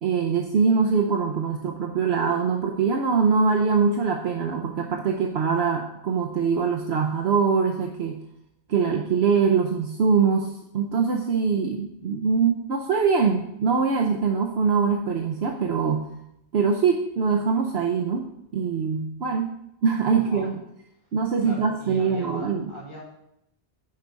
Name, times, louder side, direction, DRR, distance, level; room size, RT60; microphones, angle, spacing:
voice 1, 0.0-8.2 8.7-16.1 16.5-19.5 19.8-20.6 21.1-22.7, right 5 dB, 65° right, 2 dB, 1.0 m, -23 dB
voice 2, 20.1-20.5 20.9-23.0, right 1 dB, 25° left, -6 dB, 3.7 m, -41 dB
10.5 x 4.8 x 5.3 m, 0.78 s
omnidirectional pair, 1.2 m